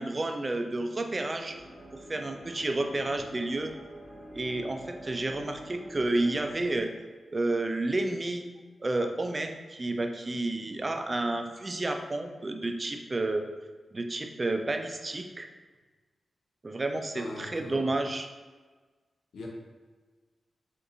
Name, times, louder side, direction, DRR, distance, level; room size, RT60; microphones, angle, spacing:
voice 1, 0.0-1.6 1.9-3.7 4.3-6.9 7.3-8.5 8.8-13.5 13.9-15.5 16.6-18.3, right 2 dB, 35° right, 5 dB, 0.4 m, -30 dB
sound 1, 1.4-6.8, right 1 dB, 20° right, 1.0 m, -47 dB
voice 2, 17.1-17.9 19.3-19.5, left 2 dB, 85° left, 0 dB, 0.6 m, -41 dB
3.9 x 2.5 x 2.7 m, 1.3 s
cardioid pair, 50°, 0 cm